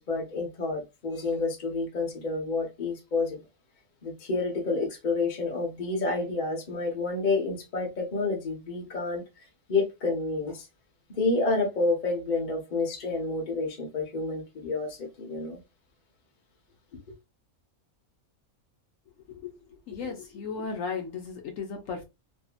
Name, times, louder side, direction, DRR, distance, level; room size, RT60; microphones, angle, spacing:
voice 1, 0.0-3.4 4.0-9.2 9.7-10.7 11.1-15.6, left 3 dB, 40° left, 0.8 m, -29 dB
voice 2, 19.9-22.0, left 5 dB, 70° left, 1.0 m, -35 dB
2.6 x 2.6 x 2.4 m
omnidirectional pair, 1.5 m